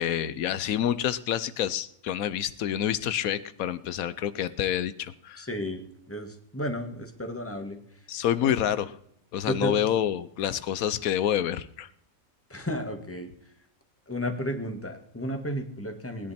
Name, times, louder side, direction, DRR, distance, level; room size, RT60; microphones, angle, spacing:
voice 1, 0.0-5.5 8.1-8.9 9.3-11.9, left 10 dB, 90° left, 14 dB, 1.2 m, -28 dB
voice 2, 5.4-5.8 6.1-7.8 8.4-8.5 9.5-9.8 12.5-13.3 14.1-16.3, equal, 10° left, 5 dB, 1.8 m, -32 dB
19.5 x 10.5 x 4.3 m, 0.69 s
omnidirectional pair, 1.4 m